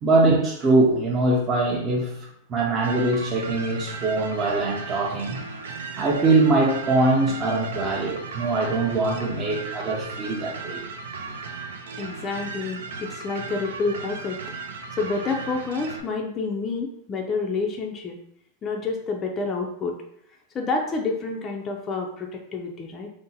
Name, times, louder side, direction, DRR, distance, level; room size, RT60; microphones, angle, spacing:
voice 1, 0.0-5.4 6.0-10.8, right 2 dB, 25° right, -3 dB, 0.5 m, -22 dB
sound 1, 2.8-16.0, right 4 dB, 90° right, 0.4 m, -36 dB
voice 2, 12.0-14.4 14.9-18.2 18.6-20.0 20.5-23.1, left 4 dB, 25° left, 1 dB, 0.4 m, -28 dB
2.6 x 2.1 x 3.9 m, 0.71 s
supercardioid pair, 135°, 0 cm